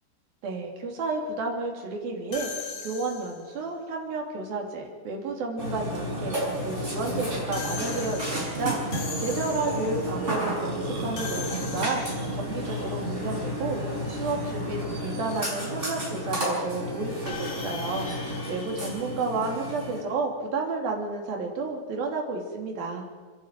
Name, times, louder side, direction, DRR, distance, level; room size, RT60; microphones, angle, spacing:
voice 1, 0.4-23.0, right 3 dB, 60° right, 1 dB, 4.6 m, -31 dB
sound 1, 2.3-3.6 7.5-10.0 11.2-12.4 17.3-19.8, left 5 dB, 35° left, 2.2 m, -39 dB
Burping eructation, 5.6-20.0, equal, 15° right, 6.4 m, -32 dB
30.0 x 11.0 x 9.1 m, 1.5 s
omnidirectional pair, 4.8 m